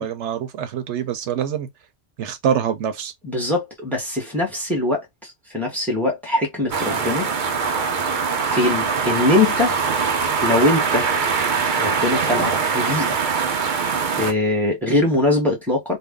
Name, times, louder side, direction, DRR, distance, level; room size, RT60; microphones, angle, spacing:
voice 1, 0.0-1.7 2.2-3.1, right 8 dB, 85° right, 1.0 m, -25 dB
voice 2, 3.2-7.3 8.4-9.8 10.4-11.1 11.8-13.2 14.2-16.0, left 2 dB, ahead, 1.0 m, -22 dB
sound 1, 6.7-14.3, right 5 dB, 50° right, 0.7 m, -22 dB
2.6 x 2.1 x 3.5 m
omnidirectional pair, 1.1 m